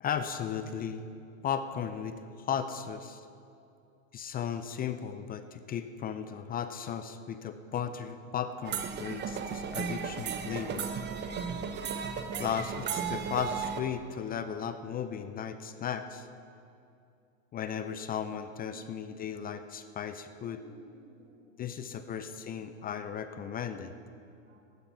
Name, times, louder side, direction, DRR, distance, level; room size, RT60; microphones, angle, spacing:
voice 1, 0.0-1.1 1.4-3.3 4.1-10.9 12.4-16.3 17.5-20.6 21.6-23.9, left 8 dB, 20° left, 10 dB, 0.5 m, -36 dB
sound 1, 8.6-13.8, right 7 dB, 25° right, 0.8 m, -35 dB
voice 2, 18.7-19.5 20.6-21.5 21.8-22.2 24.4-24.6, equal, 85° right, 1 dB, 3.8 m, -57 dB
15.0 x 12.0 x 5.5 m, 2.6 s
supercardioid pair, 130°, 41 cm